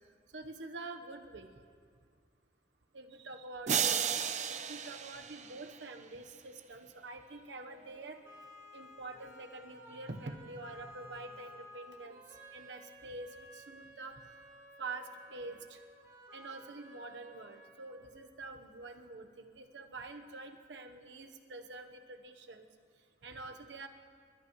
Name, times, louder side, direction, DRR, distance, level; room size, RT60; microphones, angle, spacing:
voice 1, 0.3-1.5 2.9-8.2 8.7-12.2 12.5-14.2 14.8-15.8 16.3-22.7 23.2-23.9, right 3 dB, 85° right, 5 dB, 1.1 m, -46 dB
sound 1, 3.7-6.0, right 8 dB, 40° right, 0.6 m, -34 dB
sound 2, 7.7-18.6, equal, 15° right, 2.6 m, -55 dB
27.5 x 14.0 x 3.1 m, 2.1 s
head